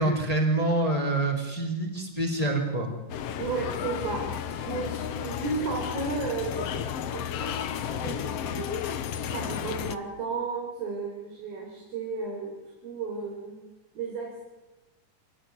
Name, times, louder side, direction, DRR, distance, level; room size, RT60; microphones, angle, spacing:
voice 1, 0.0-2.9, right 2 dB, 10° left, 3 dB, 3.7 m, -26 dB
sound 1, 3.1-10.0, left 9 dB, 65° left, 1.5 m, -33 dB
voice 2, 3.4-4.2 4.6-6.7 7.0-8.7 9.3-12.5 12.8-13.5 13.9-14.4, right 4 dB, 80° right, -1 dB, 6.7 m, -33 dB
26.5 x 18.0 x 9.6 m, 1.1 s
omnidirectional pair, 4.1 m